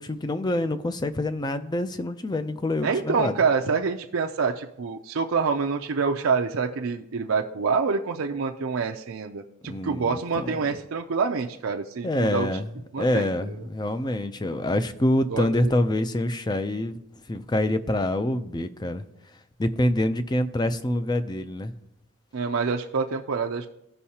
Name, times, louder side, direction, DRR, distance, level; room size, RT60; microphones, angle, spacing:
voice 1, 0.0-3.4 9.6-10.6 12.0-12.7 13.0-17.0 17.3-19.1 19.3-21.7, left 1 dB, 20° left, 10 dB, 0.4 m, -26 dB
voice 2, 2.8-12.5 12.9-13.6 15.3-15.7 22.3-23.7, right 5 dB, 65° right, 2 dB, 0.5 m, -26 dB
16.5 x 5.5 x 2.8 m, 0.81 s
head